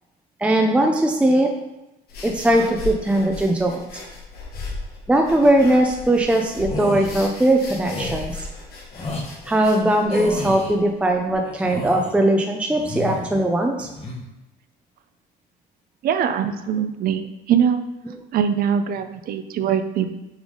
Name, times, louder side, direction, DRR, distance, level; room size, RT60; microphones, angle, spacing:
voice 1, 0.4-1.5 2.2-3.8 5.1-8.4 9.5-13.9, right 1 dB, 5° right, 2 dB, 0.5 m, -19 dB
sound 1, 2.1-11.3, left 3 dB, 65° left, 1.5 m, -37 dB
sound 2, 6.6-7.1 7.8-8.2 8.9-9.3 10.1-10.7 11.4-12.1 12.7-13.4 13.8-14.2, left 2 dB, 35° left, 1.4 m, -30 dB
voice 2, 16.0-17.8 18.3-20.1, right 8 dB, 60° right, 10 dB, 0.6 m, -22 dB
7.2 x 3.5 x 3.8 m, 0.97 s
cardioid pair, 110°, 17 cm